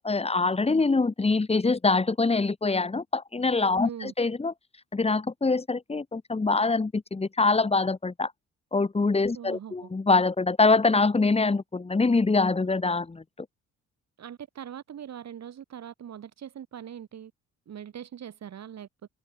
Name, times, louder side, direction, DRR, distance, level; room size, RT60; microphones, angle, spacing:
voice 1, 0.0-4.5 4.9-8.3 8.7-13.2, left 3 dB, 20° left, 1.8 m, -24 dB
voice 2, 9.3-9.9 14.2-17.3 17.7-19.1, right 9 dB, 60° right, 6.8 m, -41 dB
cardioid pair, 90°, 30 cm